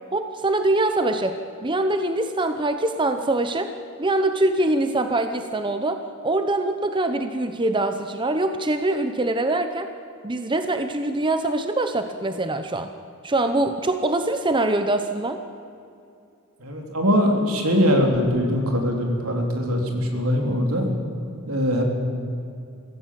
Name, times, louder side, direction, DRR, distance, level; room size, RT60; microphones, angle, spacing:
voice 1, 0.1-3.7 4.0-9.9 10.2-12.9 13.2-15.4, right 2 dB, 20° right, 8 dB, 0.7 m, -23 dB
voice 2, 16.6-20.9 21.5-21.8, equal, 75° right, 1 dB, 3.8 m, -22 dB
24.5 x 16.0 x 7.7 m, 2.6 s
head